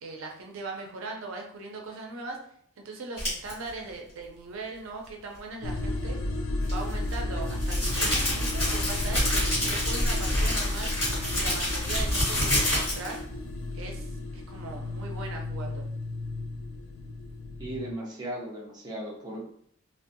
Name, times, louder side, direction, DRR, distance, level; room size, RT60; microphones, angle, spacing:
voice 1, 0.0-2.4 2.8-6.2 6.6-10.9 11.3-13.2 13.7-15.8, right 3 dB, 75° right, 2 dB, 0.5 m, -39 dB
sound 1, 3.2-3.5 6.6-13.2, left 1 dB, 30° left, 1.3 m, -28 dB
sound 2, 5.6-17.9, left 2 dB, 70° left, 0.3 m, -33 dB
voice 2, 17.6-19.5, right 1 dB, 20° right, -3 dB, 0.5 m, -37 dB
2.5 x 2.0 x 2.5 m, 0.66 s
head